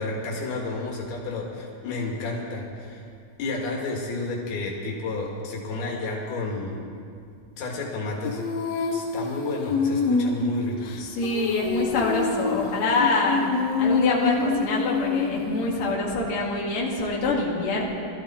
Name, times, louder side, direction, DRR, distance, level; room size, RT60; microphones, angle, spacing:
voice 1, 0.0-3.1 3.4-6.8 7.6-8.4 8.9-11.0, left 3 dB, 85° left, -1 dB, 3.9 m, -31 dB
Female singing, 8.2-15.9, left 4 dB, 70° left, 1.7 m, -26 dB
voice 2, 11.0-13.4 13.8-17.8, left 3 dB, 50° left, -4 dB, 3.1 m, -25 dB
21.5 x 13.5 x 4.3 m, 2.3 s
omnidirectional pair, 4.3 m